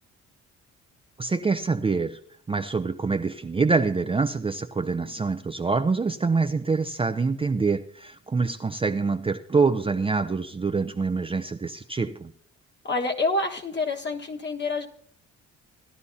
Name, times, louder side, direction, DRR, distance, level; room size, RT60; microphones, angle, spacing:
voice 1, 1.2-2.2 2.5-12.3, right 4 dB, 20° right, 7 dB, 0.5 m, -25 dB
voice 2, 12.8-14.9, left 3 dB, 35° left, 2 dB, 1.6 m, -27 dB
16.5 x 11.5 x 2.8 m, 0.64 s
cardioid pair, 90°, 30 cm